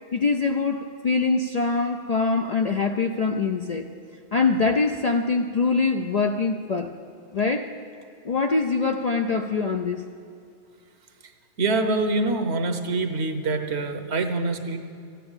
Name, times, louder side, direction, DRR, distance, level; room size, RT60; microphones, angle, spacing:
voice 1, 0.1-3.9 4.3-6.9 7.3-7.7 8.2-10.0, left 4 dB, 50° left, 4 dB, 0.5 m, -24 dB
voice 2, 11.6-14.8, right 3 dB, 65° right, 7 dB, 1.2 m, -25 dB
14.0 x 9.3 x 8.9 m, 2.4 s
omnidirectional pair, 1.2 m